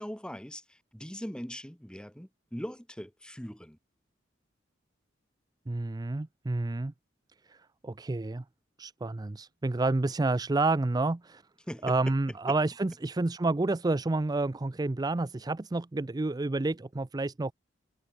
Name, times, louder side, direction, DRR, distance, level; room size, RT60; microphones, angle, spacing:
voice 1, 0.0-3.8 11.7-12.1, equal, 5° left, 2.4 m, -41 dB
voice 2, 5.7-6.9 7.5-8.4 8.8-11.4 11.8-17.5, right 2 dB, 20° right, 0.5 m, -29 dB
head